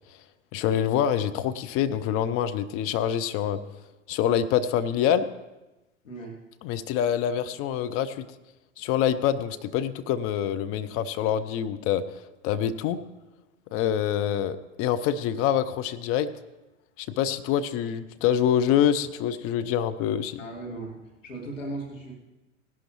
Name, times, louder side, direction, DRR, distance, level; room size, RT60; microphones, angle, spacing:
voice 1, 0.5-3.6 4.1-5.3 6.6-8.3 8.8-12.0 12.4-13.0 13.7-16.3 17.0-20.4, left 9 dB, 35° left, 11 dB, 0.7 m, -25 dB
voice 2, 20.4-22.1, right 2 dB, 80° left, -1 dB, 2.2 m, -37 dB
18.0 x 11.5 x 3.1 m, 1.1 s
figure-of-eight pair, 85°, 38 cm